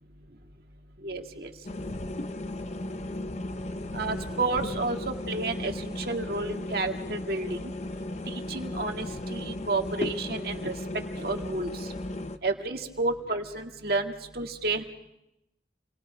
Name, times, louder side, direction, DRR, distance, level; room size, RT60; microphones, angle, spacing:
voice 1, 1.0-1.5 3.9-5.0 5.3-7.6 8.3-10.7 11.2-11.7 12.4-14.8, right 3 dB, 55° right, 3 dB, 2.0 m, -31 dB
sound 1, 1.6-12.4, left 1 dB, 35° left, 0.8 m, -35 dB
29.0 x 20.0 x 5.0 m, 0.84 s
head